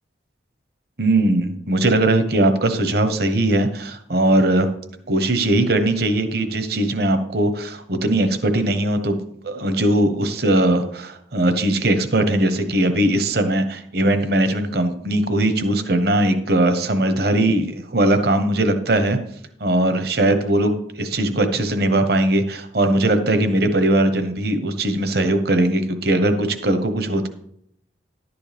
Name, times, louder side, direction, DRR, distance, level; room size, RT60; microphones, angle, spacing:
voice 1, 1.0-4.7 5.1-9.2 9.4-19.2 19.6-27.3, right 1 dB, 55° right, 8 dB, 1.0 m, -20 dB
11.5 x 9.8 x 3.5 m, 0.69 s
head